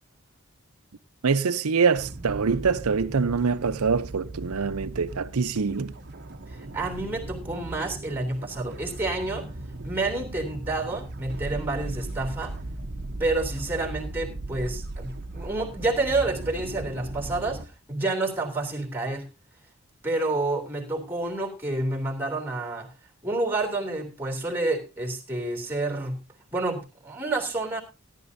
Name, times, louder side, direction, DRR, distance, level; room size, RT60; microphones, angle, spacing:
voice 1, 1.2-5.9, right 5 dB, 85° right, 0.7 m, -24 dB
sound 1, 1.9-17.7, right 2 dB, 50° right, 0.9 m, -37 dB
voice 2, 6.5-9.5 9.8-12.5 13.2-19.3 20.0-22.9 23.2-26.2 26.5-27.8, right 2 dB, 10° right, 3.0 m, -29 dB
17.0 x 11.5 x 2.7 m
head